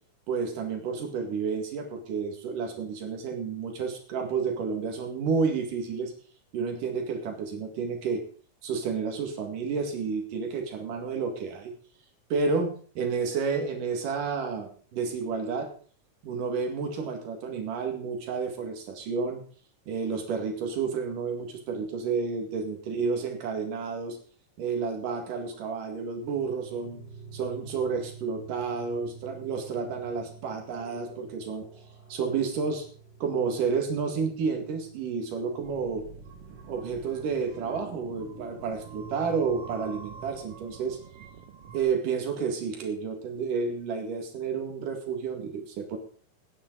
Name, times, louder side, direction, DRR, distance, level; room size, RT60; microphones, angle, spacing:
voice 1, 0.3-6.1 6.5-8.2 8.6-11.7 12.3-15.7 16.2-19.4 19.9-24.2 24.6-27.0 27.3-31.7 32.1-32.8 33.2-36.1 36.7-41.0 41.7-46.0, right 5 dB, 85° right, 4 dB, 3.6 m, -30 dB
sound 1, 25.8-40.4, right 3 dB, 35° left, 4.2 m, -50 dB
sound 2, 35.6-41.8, right 5 dB, 65° right, 1.5 m, -46 dB
19.0 x 9.9 x 4.0 m, 0.42 s
omnidirectional pair, 3.6 m